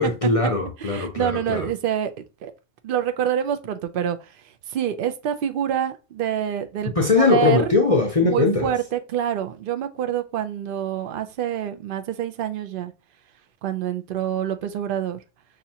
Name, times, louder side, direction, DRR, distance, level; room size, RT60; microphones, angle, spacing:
voice 1, 0.0-1.7 7.0-8.7, left 3 dB, 40° left, 0.6 m, -20 dB
voice 2, 0.8-2.1 2.4-2.5 2.8-7.7 8.2-12.9 13.6-15.2, right 9 dB, 60° right, 0.6 m, -26 dB
5.7 x 2.4 x 2.8 m
omnidirectional pair, 1.2 m